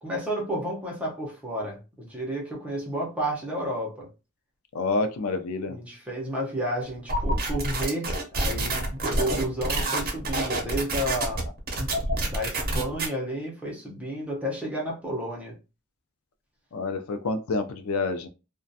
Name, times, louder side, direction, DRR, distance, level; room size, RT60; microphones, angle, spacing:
voice 1, 0.0-4.1 5.7-11.4 12.2-15.5, right 1 dB, 5° right, 0.7 m, -31 dB
voice 2, 4.7-5.8 12.1-12.3 16.7-18.3, left 3 dB, 85° left, 0.4 m, -28 dB
sound 1, 7.1-13.1, right 1 dB, 45° right, 0.7 m, -27 dB
2.4 x 2.2 x 2.6 m
head